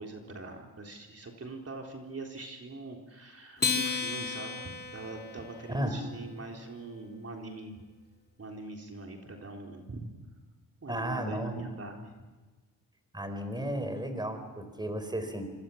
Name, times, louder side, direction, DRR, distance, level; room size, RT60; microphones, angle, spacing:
voice 1, 0.0-7.8 8.4-10.1 10.8-12.1, right 2 dB, 40° right, 1 dB, 3.8 m, -43 dB
Acoustic guitar, 3.6-6.3, left 5 dB, 25° left, 3.0 m, -34 dB
voice 2, 5.7-6.0 10.9-11.6 13.1-15.5, right 1 dB, 10° right, 8 dB, 4.5 m, -34 dB
27.5 x 24.5 x 7.2 m, 1.3 s
cardioid pair, 80°, 37 cm